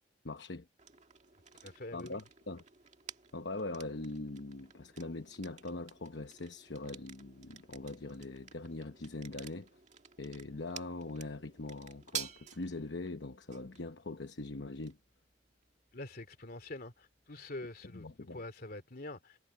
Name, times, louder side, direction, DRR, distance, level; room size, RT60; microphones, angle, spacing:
voice 1, 0.2-0.7 1.5-2.6 3.3-9.7 10.2-15.0 17.9-18.4, left 2 dB, 70° left, 1.0 m, -42 dB
sound 1, 0.8-18.5, right 8 dB, 40° right, 1.9 m, -51 dB
voice 2, 1.6-2.2 15.9-19.4, left 2 dB, 55° left, 2.6 m, -45 dB
head